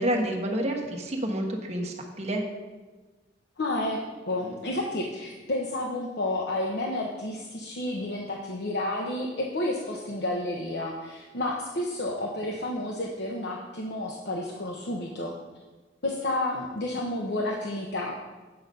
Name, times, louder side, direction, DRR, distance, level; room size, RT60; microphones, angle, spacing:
voice 1, 0.0-2.4, right 1 dB, 35° right, 1 dB, 1.3 m, -29 dB
voice 2, 3.6-4.0 4.3-15.3 16.0-18.3, left 1 dB, 60° left, -1 dB, 0.9 m, -31 dB
8.8 x 5.9 x 5.4 m, 1.2 s
head